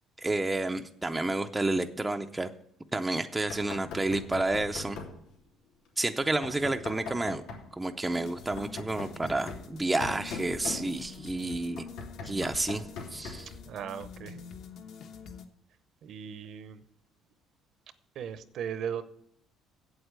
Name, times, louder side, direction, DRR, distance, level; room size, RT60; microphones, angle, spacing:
voice 1, 0.2-2.5 2.9-5.0 6.0-7.4 7.7-11.9 12.2-13.5, right 2 dB, 10° right, 5 dB, 0.5 m, -30 dB
Knock, 3.5-5.2 6.4-7.7 8.4-11.3 11.8-13.6, left 4 dB, 90° left, 3.0 m, -41 dB
sound 1, 8.1-15.4, left 5 dB, 55° left, 1.0 m, -47 dB
voice 2, 13.7-14.5 16.0-16.8 18.2-19.0, right 8 dB, 50° right, 13 dB, 0.8 m, -37 dB
8.1 x 8.0 x 8.1 m, 0.72 s
cardioid pair, 150°, 0 cm